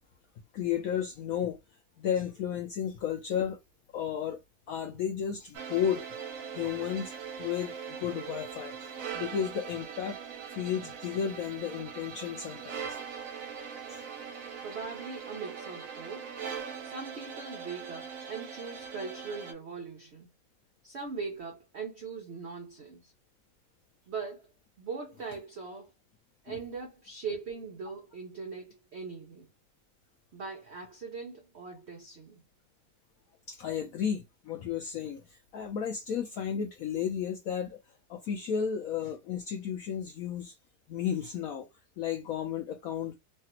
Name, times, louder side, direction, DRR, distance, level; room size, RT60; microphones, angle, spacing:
voice 1, 0.5-1.6 2.0-3.6 3.9-4.4 4.7-6.0 6.4-8.9 9.1-10.2 10.6-13.0 13.9-14.0 26.5-26.6 33.5-37.8 38.1-40.6 40.9-41.7 42.0-43.1, left 8 dB, 80° left, 0.7 m, -33 dB
sound 1, 5.5-19.5, right 7 dB, 60° right, 0.9 m, -41 dB
voice 2, 14.6-16.3 16.8-20.3 20.8-23.1 24.1-24.5 24.8-25.9 26.4-29.5 30.3-32.4, right 5 dB, 85° right, 0.5 m, -40 dB
3.2 x 2.4 x 2.8 m
omnidirectional pair, 2.0 m